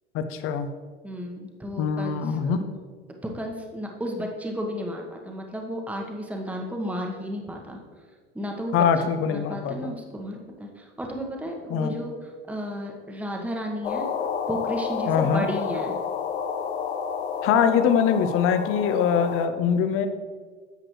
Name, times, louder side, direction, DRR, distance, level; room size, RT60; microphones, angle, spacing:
voice 1, 0.1-0.7 1.8-2.6 8.7-9.9 11.7-12.0 15.1-15.4 17.4-20.1, left 7 dB, 40° left, 10 dB, 0.8 m, -23 dB
voice 2, 1.0-2.6 3.2-7.8 8.3-8.7 9.3-14.1 14.5-16.0, equal, 5° right, 2 dB, 1.2 m, -33 dB
sound 1, 13.8-19.5, left 6 dB, 70° left, 0.8 m, -30 dB
10.5 x 7.5 x 3.1 m, 1.5 s
figure-of-eight pair, 80°, 34 cm